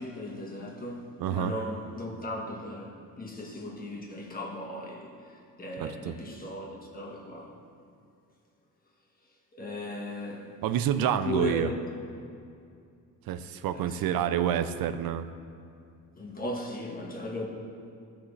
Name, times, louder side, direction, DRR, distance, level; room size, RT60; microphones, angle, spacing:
voice 1, 0.0-7.6 9.5-10.6 11.0-11.8 13.7-14.5 16.2-17.5, left 1 dB, 25° left, 1.6 m, -37 dB
voice 2, 1.2-1.5 5.8-6.1 10.6-11.7 13.3-15.3, right 9 dB, 85° right, 0.5 m, -28 dB
16.5 x 6.0 x 3.2 m
cardioid pair, 125°, 34 cm